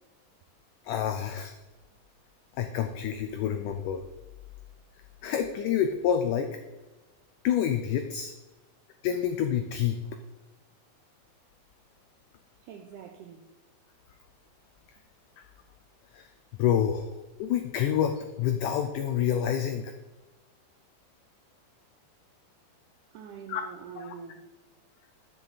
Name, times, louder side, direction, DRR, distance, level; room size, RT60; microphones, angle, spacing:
voice 1, 0.9-1.5 2.6-4.0 5.2-6.5 7.4-8.3 9.0-10.0 15.4-15.5 16.1-16.2 16.6-17.1 17.4-19.9 23.5-23.6 24.0-24.1, left 9 dB, 90° left, 1.8 m, -27 dB
voice 2, 12.6-13.5 23.1-24.5, right 7 dB, 90° right, 1.8 m, -45 dB
9.9 x 7.1 x 4.0 m
omnidirectional pair, 4.3 m